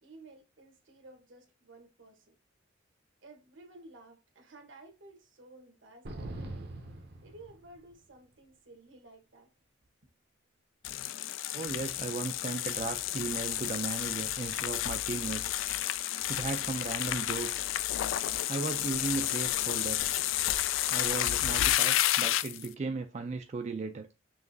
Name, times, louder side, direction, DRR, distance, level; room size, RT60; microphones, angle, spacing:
voice 1, 0.0-2.4 3.2-6.6 7.2-9.5, right 2 dB, 75° right, 1.2 m, -54 dB
sound 1, 6.0-8.0, right 1 dB, 55° right, 0.7 m, -42 dB
sound 2, 10.8-22.7, left 13 dB, 85° left, 0.3 m, -31 dB
voice 2, 11.5-15.4 16.3-17.7 18.5-20.1 20.9-24.1, right 4 dB, 35° right, 0.3 m, -36 dB
5.7 x 3.0 x 2.6 m
head